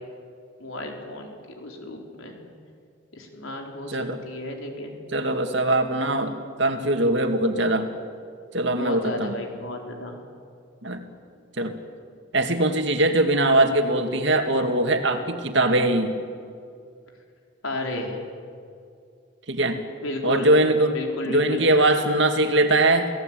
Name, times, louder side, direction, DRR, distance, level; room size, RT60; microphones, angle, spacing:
voice 1, 0.6-2.4 3.1-4.0 4.2-5.0 8.7-10.1 17.6-18.2 20.0-20.5 20.9-21.6, left 1 dB, 75° left, 2 dB, 4.6 m, -33 dB
voice 2, 3.9-4.2 5.1-7.9 8.5-9.3 10.8-11.0 11.6-11.7 12.3-16.1 19.5-19.8 20.2-20.9 21.3-23.1, right 1 dB, 60° right, 6 dB, 2.3 m, -21 dB
30.0 x 17.5 x 9.2 m, 2.3 s
head